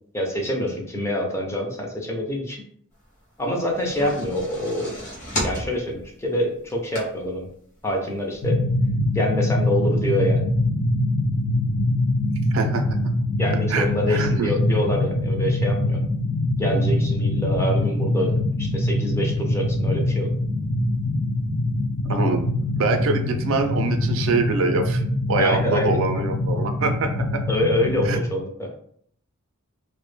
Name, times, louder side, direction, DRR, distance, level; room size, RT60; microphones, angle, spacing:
voice 1, 0.1-2.6 3.4-4.9 5.4-7.5 7.8-8.6 9.1-10.5 13.4-16.0 16.6-20.3 25.4-26.0 27.5-28.7, left 1 dB, 15° left, 0 dB, 0.4 m, -26 dB
sound 1, 3.5-7.5 7.9-8.0 8.3-8.4, equal, 40° left, 0.9 m, -32 dB
sound 2, 8.4-28.2, left 1 dB, 65° left, 0.5 m, -23 dB
voice 2, 12.5-12.8 13.7-14.5 22.1-22.5 22.7-25.0 25.3-27.4 28.1-28.2, right 3 dB, 65° right, 6 dB, 0.4 m, -24 dB
2.1 x 2.0 x 3.1 m, 0.63 s
head